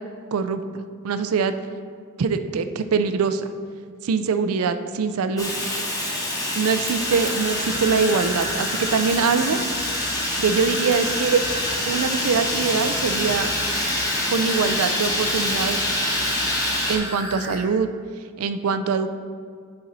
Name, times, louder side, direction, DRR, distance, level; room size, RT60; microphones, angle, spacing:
voice 1, 0.3-1.5 2.2-3.4 4.0-5.5 6.5-9.6 10.4-11.4 11.9-13.5 14.3-15.9 16.9-17.9 18.4-19.1, right 5 dB, 85° right, 10 dB, 0.4 m, -23 dB
Fire, 5.4-17.0, left 1 dB, 15° left, 1.1 m, -26 dB
sound 1, 6.9-17.6, equal, 50° left, 2.0 m, -34 dB
10.5 x 4.2 x 4.0 m, 2.1 s
head